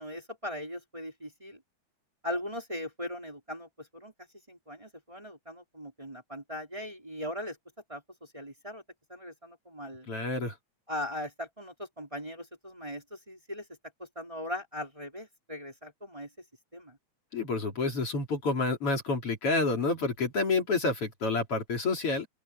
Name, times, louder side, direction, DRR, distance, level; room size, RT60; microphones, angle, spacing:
voice 1, 0.0-1.6 2.2-4.1 4.5-7.6 7.9-8.8 9.1-10.1 10.9-13.7 14.0-16.3 16.7-17.0, left 1 dB, 10° right, 4.6 m, -39 dB
voice 2, 10.1-10.5 17.3-22.3, left 3 dB, 50° left, 4.2 m, -29 dB
open air
omnidirectional pair, 3.3 m